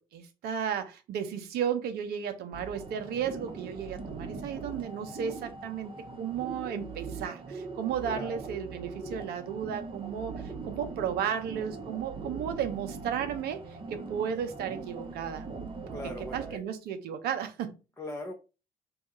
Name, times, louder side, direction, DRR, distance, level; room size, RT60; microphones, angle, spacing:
voice 1, 0.0-15.5 16.3-17.8, right 8 dB, 60° right, 0.7 m, -34 dB
sound 1, 2.5-16.6, right 4 dB, 30° right, 0.8 m, -41 dB
voice 2, 8.0-8.3 15.9-16.6 18.0-18.3, left 1 dB, 15° left, 0.7 m, -39 dB
2.8 x 2.3 x 4.0 m
hypercardioid pair, 50°, 18 cm